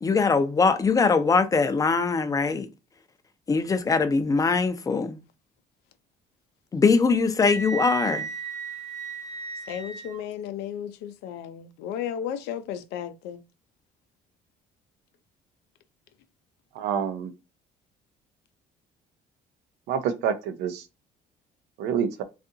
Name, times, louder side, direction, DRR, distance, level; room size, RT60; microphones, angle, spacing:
voice 1, 0.0-2.7 3.5-5.2 6.7-8.3, left 4 dB, 20° left, 0.4 m, -22 dB
Wind instrument woodwind instrument, 7.4-10.2, right 6 dB, 40° right, 1.0 m, -34 dB
voice 2, 9.7-13.4, left 9 dB, 90° left, 0.4 m, -34 dB
voice 3, 16.8-17.3 19.9-20.8 21.8-22.2, right 7 dB, 90° right, 0.5 m, -27 dB
2.7 x 2.4 x 2.5 m
cardioid pair, 110°, 17 cm